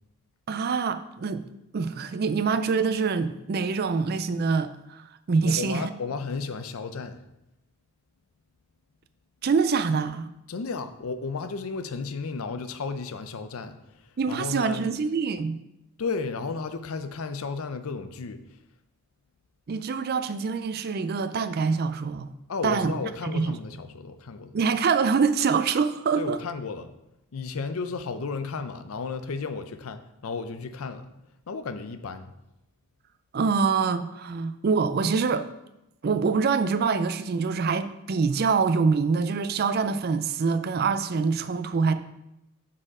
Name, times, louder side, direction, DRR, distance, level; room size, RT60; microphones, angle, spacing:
voice 1, 0.5-1.4 1.7-5.9 9.4-10.3 14.2-15.6 19.7-22.3 22.6-23.6 24.5-26.4 33.3-35.5 36.0-41.9, right 5 dB, 45° right, 10 dB, 0.4 m, -25 dB
voice 2, 5.4-7.2 10.5-13.8 14.3-14.8 16.0-18.4 22.5-24.5 26.2-26.9 27.3-31.1 31.5-32.3, left 4 dB, 75° left, 10 dB, 0.5 m, -33 dB
7.5 x 4.2 x 4.9 m, 0.89 s
head